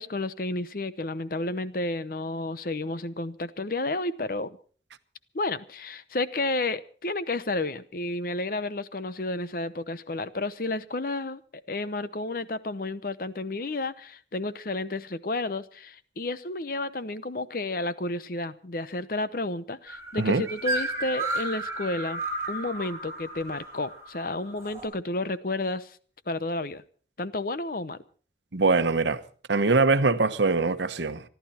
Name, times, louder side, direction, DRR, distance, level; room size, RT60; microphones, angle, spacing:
voice 1, 0.0-4.6 5.3-11.4 11.7-22.2 22.5-26.0 26.3-26.8 27.2-28.0, left 2 dB, 50° left, 0.8 m, -31 dB
sound 1, 19.9-24.9, right 2 dB, 15° right, 4.4 m, -33 dB
voice 2, 28.5-29.2 29.5-31.2, right 3 dB, 85° right, 1.0 m, -23 dB
26.5 x 11.5 x 4.3 m
head